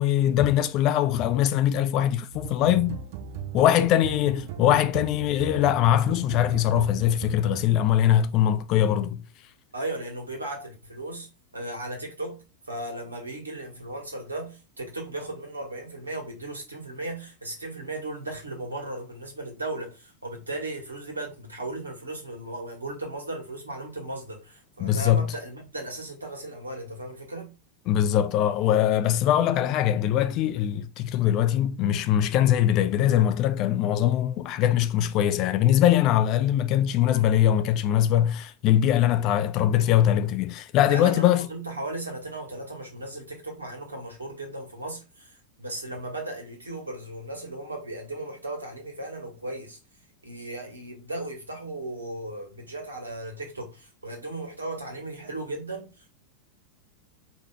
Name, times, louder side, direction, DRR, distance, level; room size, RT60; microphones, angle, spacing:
voice 1, 0.0-3.0 3.5-9.2 24.8-25.3 27.9-41.5, left 11 dB, 40° left, 0.5 m, -22 dB
sound 1, 2.3-8.0, right 9 dB, 50° right, 0.9 m, -37 dB
voice 2, 9.7-11.3 11.5-27.5 29.2-29.3 36.0-36.2 37.0-37.4 39.1-39.3 40.9-49.8 50.2-56.1, right 2 dB, 75° right, 1.7 m, -36 dB
4.9 x 2.9 x 3.5 m
figure-of-eight pair, 90°, 0 cm